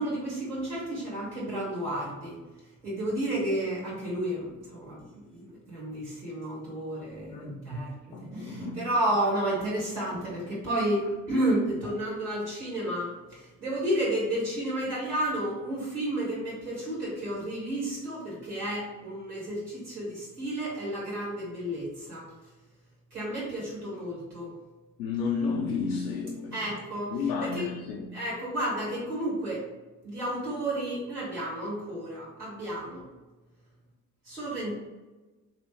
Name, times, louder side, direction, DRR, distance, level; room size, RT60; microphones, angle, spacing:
voice 1, 0.0-2.3 2.8-22.3 23.1-24.5 26.5-27.6 28.1-29.7 30.0-33.1 34.2-34.8, right 1 dB, 85° right, 1.1 m, -31 dB
voice 2, 7.3-7.6 8.1-8.8 25.0-26.6 27.1-28.2, left 5 dB, 70° left, 0.6 m, -32 dB
3.3 x 2.9 x 4.4 m
figure-of-eight pair, 45°, 45 cm